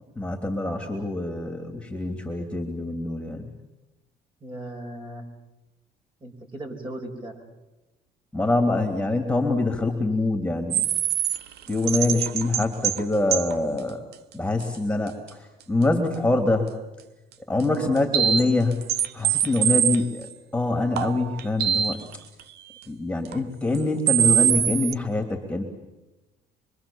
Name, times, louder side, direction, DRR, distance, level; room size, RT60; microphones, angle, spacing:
voice 1, 0.2-3.5 8.3-10.8 11.7-14.0 14.3-16.7 17.5-18.8 19.1-20.3 20.5-22.0 22.9-25.6, left 2 dB, 5° left, 4 dB, 3.2 m, -25 dB
voice 2, 4.4-5.3 6.2-7.4 17.7-18.1, right 1 dB, 30° right, 3 dB, 5.7 m, -37 dB
sound 1, 10.7-13.0 13.3-13.5 14.1-14.2 14.6-14.7 15.1-15.2 17.6-17.7 18.0-20.3 21.0-22.1 22.4-22.5 23.3-23.4 23.7-23.8 24.1-24.9, right 10 dB, 75° right, 1.0 m, -23 dB
25.0 x 24.0 x 7.3 m, 1.0 s
cardioid pair, 110°, 17 cm